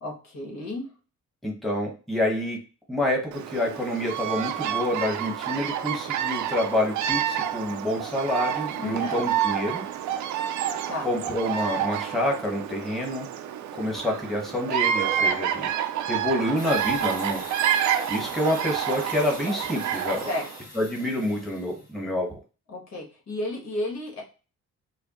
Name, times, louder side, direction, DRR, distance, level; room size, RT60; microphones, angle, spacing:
voice 1, 0.0-0.9 8.8-9.2 10.9-11.1 20.3-20.5 22.7-24.2, left 2 dB, 60° left, -1 dB, 1.6 m, -32 dB
voice 2, 1.4-2.6 2.9-9.8 11.0-13.3 13.8-15.7 16.1-17.4 18.1-20.3 20.7-22.4, left 1 dB, ahead, -1 dB, 1.3 m, -27 dB
Bird vocalization bird call bird song, 3.3-20.6, right 9 dB, 70° right, 0.5 m, -29 dB
sound 1, 16.6-22.0, left 2 dB, 25° left, 1.8 m, -42 dB
4.9 x 2.3 x 3.0 m, 0.34 s
cardioid pair, 90°, 30 cm